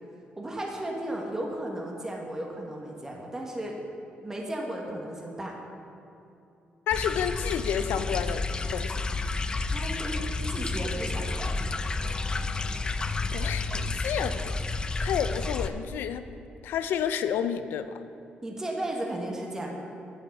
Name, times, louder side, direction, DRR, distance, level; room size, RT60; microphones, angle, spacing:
voice 1, 0.4-3.8 4.2-5.5 9.7-11.5 18.4-19.7, right 1 dB, 15° right, -1 dB, 1.4 m, -34 dB
voice 2, 6.9-8.5 8.7-9.0 13.3-14.6 15.0-16.2 16.6-17.9, left 8 dB, 90° left, 11 dB, 0.5 m, -30 dB
sound 1, 6.9-15.7, left 3 dB, 25° left, 0.5 m, -30 dB
9.1 x 8.4 x 6.0 m, 2.7 s
cardioid pair, 120°, 3 cm